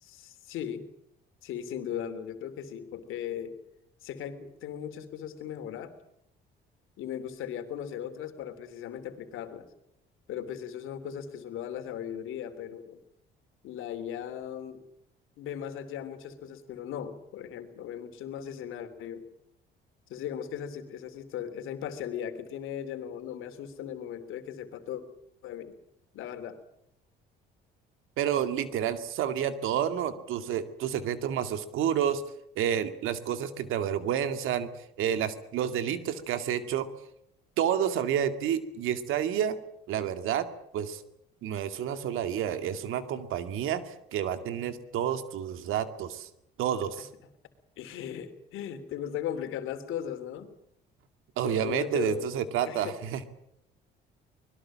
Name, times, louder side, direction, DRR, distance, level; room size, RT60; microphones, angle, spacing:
voice 1, 0.0-0.8 1.4-3.6 4.0-5.9 7.0-9.7 10.3-13.0 13.6-14.8 15.4-19.2 20.1-25.0 25.4-25.7 26.1-26.6 47.8-50.5 51.4-53.0, left 9 dB, 75° left, 8 dB, 3.2 m, -38 dB
voice 2, 28.2-32.2 32.6-34.7 35.0-36.9 37.6-39.6 39.9-40.5 40.7-41.0 41.4-46.3 46.6-47.1 51.4-53.2, right 9 dB, 75° right, 10 dB, 2.3 m, -29 dB
25.0 x 21.0 x 7.5 m, 0.75 s
supercardioid pair, 70°, 21 cm